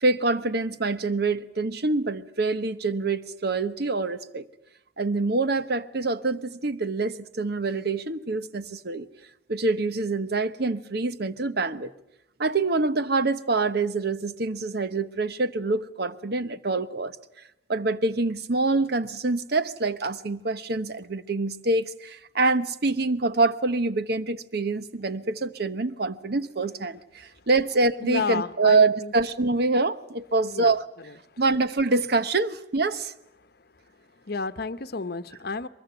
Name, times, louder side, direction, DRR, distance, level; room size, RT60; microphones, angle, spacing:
voice 1, 0.0-4.5 5.0-9.1 9.5-11.9 12.4-17.2 17.7-30.9 31.4-33.1, right 3 dB, 60° right, 1.0 m, -25 dB
voice 2, 28.0-29.1 30.5-30.7 34.3-35.7, left 4 dB, 60° left, 0.9 m, -31 dB
23.0 x 21.5 x 9.1 m
head